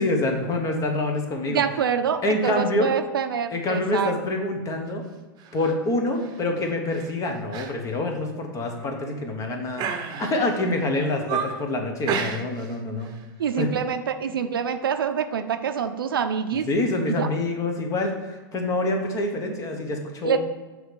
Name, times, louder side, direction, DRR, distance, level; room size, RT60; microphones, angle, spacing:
voice 1, 0.0-1.6 2.2-2.9 3.5-5.0 5.5-13.1 13.6-13.7 16.7-20.4, left 2 dB, 30° left, 3 dB, 1.2 m, -26 dB
voice 2, 1.5-4.1 13.4-16.7 17.1-17.3 20.2-20.4, right 7 dB, 90° right, 9 dB, 0.5 m, -26 dB
sound 1, 5.4-5.7 6.2-6.4 6.9-7.1 7.5-7.7 8.1-8.2 8.8-9.3 9.8-10.6 11.0-11.7 12.1-12.7 13.0-13.2, right 6 dB, 35° right, 0.8 m, -32 dB
6.2 x 3.2 x 5.3 m, 1.2 s
hypercardioid pair, 110°, 12 cm